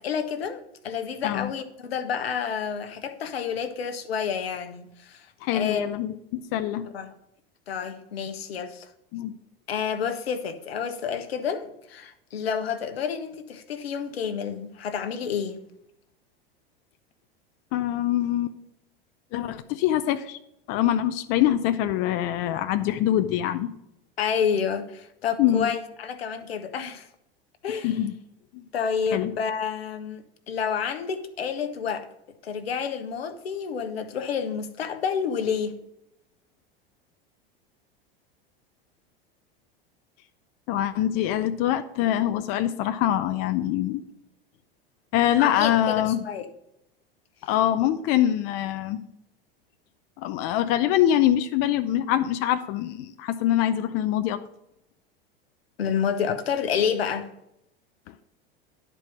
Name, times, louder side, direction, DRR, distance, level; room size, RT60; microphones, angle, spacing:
voice 1, 0.0-5.3 5.5-5.9 6.9-7.1 7.7-8.9 9.7-15.6 24.2-27.1 27.6-28.0 28.7-32.1 32.4-35.8 45.4-46.4 55.8-57.3, left 7 dB, 85° left, 1.0 m, -29 dB
voice 2, 5.4-6.9 9.1-9.3 17.7-18.6 19.3-20.4 20.7-23.7 25.4-25.7 27.8-28.1 28.5-28.6 29.1-29.3 40.7-44.0 45.1-46.2 47.4-49.0 50.2-54.4 58.1-58.2, left 12 dB, 50° left, 0.6 m, -24 dB
10.5 x 4.5 x 6.3 m
hypercardioid pair, 90°, 30 cm